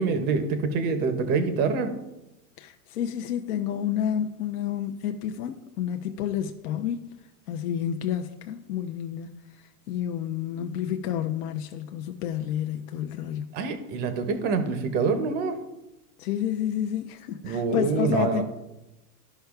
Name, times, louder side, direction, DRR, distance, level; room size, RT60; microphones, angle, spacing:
voice 1, 0.0-1.9 13.5-15.6 17.4-18.4, right 4 dB, 20° right, 0.5 m, -26 dB
voice 2, 2.6-7.1 7.5-13.5 16.2-18.4, left 10 dB, 70° left, 0.7 m, -30 dB
13.0 x 5.6 x 2.3 m
supercardioid pair, 160°, 47 cm